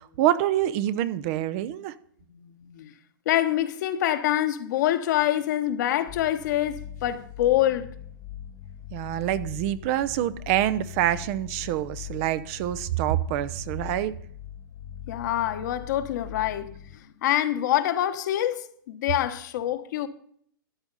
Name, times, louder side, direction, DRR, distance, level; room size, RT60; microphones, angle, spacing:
voice 1, 0.0-1.9 8.9-14.1, right 13 dB, 40° right, 0.7 m, -26 dB
voice 2, 2.3-2.9 3.2-7.9 15.1-20.1, left 12 dB, 55° left, 1.2 m, -26 dB
sound 1, 6.1-17.0, left 10 dB, 25° left, 0.8 m, -41 dB
13.0 x 9.7 x 4.1 m
hypercardioid pair, 135°, 11 cm